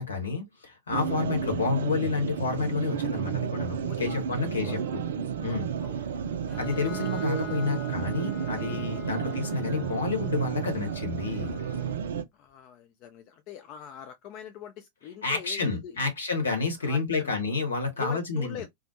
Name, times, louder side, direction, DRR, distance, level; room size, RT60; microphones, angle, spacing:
voice 1, 0.0-5.0 5.4-5.7 6.6-11.6 15.2-18.6, left 4 dB, 70° left, 1.0 m, -30 dB
sound 1, 0.9-12.2, right 8 dB, 60° right, 0.4 m, -32 dB
voice 2, 3.9-4.8 5.5-6.0 12.3-16.1 16.8-17.3 18.0-18.7, left 10 dB, 40° left, 0.3 m, -43 dB
Bowed string instrument, 6.5-12.1, left 5 dB, 5° left, 0.9 m, -45 dB
2.4 x 2.0 x 2.7 m
figure-of-eight pair, 90°, 0 cm